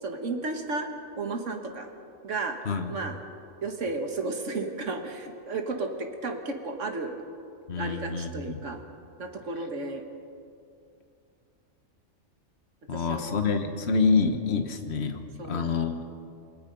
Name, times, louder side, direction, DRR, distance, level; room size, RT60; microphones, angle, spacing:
voice 1, 0.0-0.9 1.2-1.9 2.2-2.6 2.9-3.2 3.6-7.2 7.8-8.8 9.2-10.0 12.9-13.6 15.4-15.8, right 3 dB, 90° right, 4 dB, 1.9 m, -33 dB
voice 2, 7.7-8.6 12.9-15.2 15.5-16.0, left 4 dB, 60° left, 6 dB, 1.6 m, -27 dB
28.5 x 20.0 x 5.4 m, 2.5 s
omnidirectional pair, 1.2 m